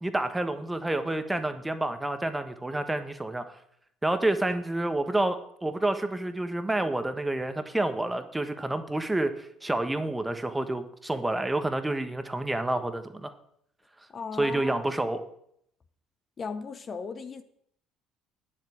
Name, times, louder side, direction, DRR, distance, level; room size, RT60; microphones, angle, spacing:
voice 1, 0.0-3.4 4.0-13.3 14.4-15.2, right 2 dB, 10° right, 9 dB, 1.4 m, -29 dB
voice 2, 14.1-14.9 16.4-17.4, left 5 dB, 35° left, 9 dB, 0.8 m, -36 dB
9.9 x 7.5 x 8.6 m, 0.71 s
figure-of-eight pair, 55°, 0 cm